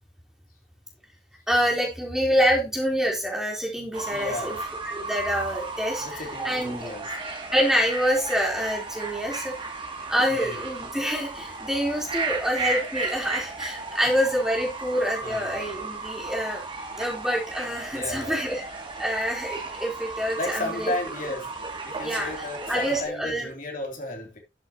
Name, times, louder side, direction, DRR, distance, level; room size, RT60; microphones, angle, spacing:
voice 1, 1.5-4.6 4.8-6.9 7.5-9.5 10.1-16.6 17.0-18.6 19.0-20.9 21.2-21.3 22.0-22.3 22.7-23.5, equal, 5° right, 4.1 m, -26 dB
Fowl / Bird, 3.9-23.0, right 3 dB, 30° right, 2.8 m, -35 dB
voice 2, 4.1-4.6 6.0-7.1 10.3-10.7 15.2-15.5 17.9-18.5 20.4-21.5 21.8-24.4, left 2 dB, 50° left, 3.4 m, -34 dB
12.5 x 8.0 x 3.1 m
head